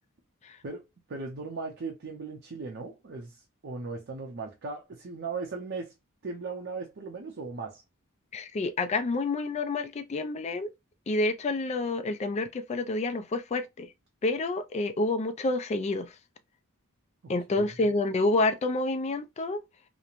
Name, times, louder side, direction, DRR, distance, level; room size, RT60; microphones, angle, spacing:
voice 1, 0.6-5.9 6.2-7.8 17.6-18.0, right 4 dB, 55° right, 0.6 m, -38 dB
voice 2, 8.3-10.7 11.1-13.9 14.2-16.2 17.3-19.6, left 2 dB, 30° left, 0.3 m, -28 dB
3.0 x 2.1 x 2.4 m
head